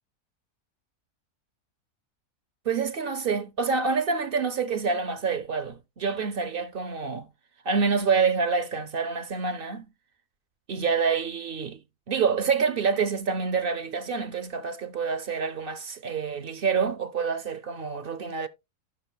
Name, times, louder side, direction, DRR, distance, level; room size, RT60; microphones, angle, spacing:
voice 1, 2.7-7.3 7.6-9.9 10.7-11.8 12.1-18.5, right 5 dB, 55° right, 0.6 m, -27 dB
15.5 x 6.0 x 2.3 m
omnidirectional pair, 1.6 m